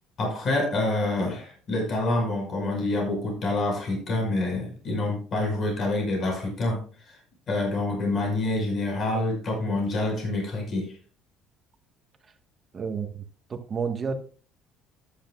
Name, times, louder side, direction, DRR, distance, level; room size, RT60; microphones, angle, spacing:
voice 1, 0.2-7.2 7.5-11.0, left 2 dB, 35° left, 0 dB, 5.4 m, -27 dB
voice 2, 12.7-13.1 13.5-14.1, right 6 dB, 25° right, 6 dB, 1.5 m, -29 dB
13.0 x 10.5 x 2.4 m, 0.40 s
cardioid pair, 140°, 0 cm